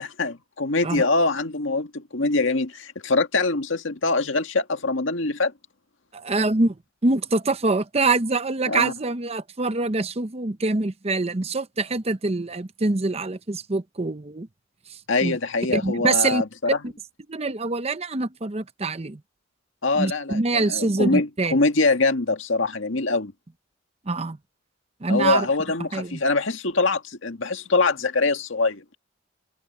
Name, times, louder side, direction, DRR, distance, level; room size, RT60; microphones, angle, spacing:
voice 1, 0.0-5.5 8.7-8.9 15.1-16.8 19.8-23.3 25.1-28.8, left 3 dB, 75° left, 1.9 m, -23 dB
voice 2, 6.1-6.8 7.0-14.5 15.2-15.4 15.7-16.4 16.8-16.9 17.3-19.2 20.0-21.6 24.1-24.4 25.0-25.5 25.9-26.2, right 3 dB, 30° right, 0.8 m, -24 dB
head